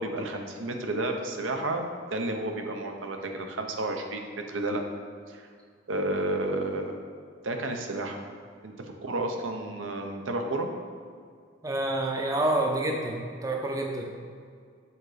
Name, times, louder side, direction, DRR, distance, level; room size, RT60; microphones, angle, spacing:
voice 1, 0.0-4.8 5.3-5.5 5.9-7.0 7.4-8.2 8.6-8.7 9.0-10.7, right 2 dB, 80° right, 4 dB, 0.8 m, -31 dB
voice 2, 11.6-14.1, right 1 dB, 15° right, 1 dB, 0.6 m, -28 dB
7.0 x 3.9 x 4.9 m, 2.1 s
head